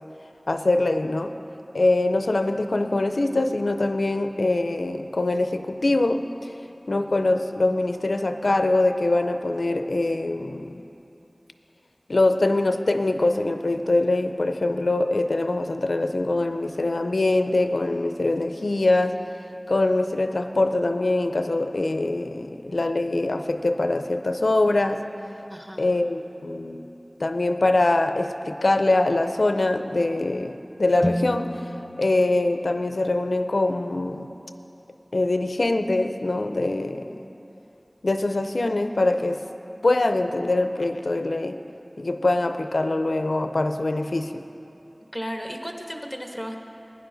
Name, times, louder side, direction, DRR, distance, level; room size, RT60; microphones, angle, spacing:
voice 1, 0.5-1.3 1.7-6.5 6.9-10.8 12.1-19.2 19.7-25.0 25.8-26.8 27.2-31.5 32.0-34.3 35.1-37.2 38.0-39.4 39.8-41.6 42.0-44.4, left 2 dB, 90° left, 8 dB, 0.4 m, -23 dB
voice 2, 25.5-25.9 45.1-46.6, equal, 5° right, 3 dB, 1.1 m, -34 dB
sound 1, 31.0-35.1, equal, 10° left, 0.8 m, -34 dB
16.0 x 10.5 x 3.9 m, 2.9 s
wide cardioid pair, 45°, 0 cm